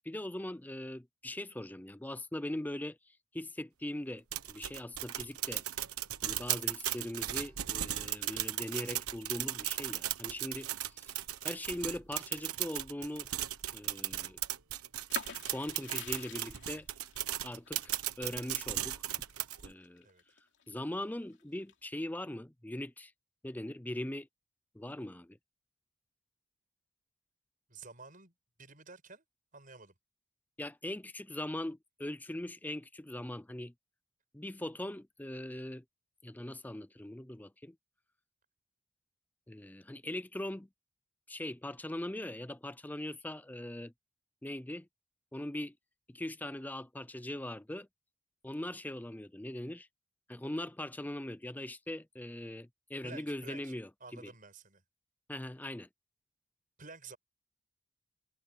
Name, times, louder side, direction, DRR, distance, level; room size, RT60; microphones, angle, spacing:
voice 1, 0.0-5.6 6.2-11.1 11.4-13.3 13.7-14.4 15.5-16.9 17.4-19.1 19.6-20.1 20.7-23.1 23.4-24.3 24.7-25.4 30.6-33.7 34.3-35.8 36.2-37.8 39.5-40.7 41.3-43.9 44.4-44.9 45.3-45.8 46.1-47.9 48.4-49.9 50.3-54.3 55.3-55.9, left 1 dB, 10° left, 0.5 m, -41 dB
sound 1, 4.3-19.7, right 13 dB, 85° right, 1.2 m, -36 dB
sound 2, 15.1-20.7 21.2-22.0, left 6 dB, 55° left, 3.0 m, -48 dB
voice 2, 27.7-28.3 28.6-29.2 29.5-29.9 53.0-53.7 54.0-54.8 56.8-57.2, right 4 dB, 40° right, 7.5 m, -51 dB
head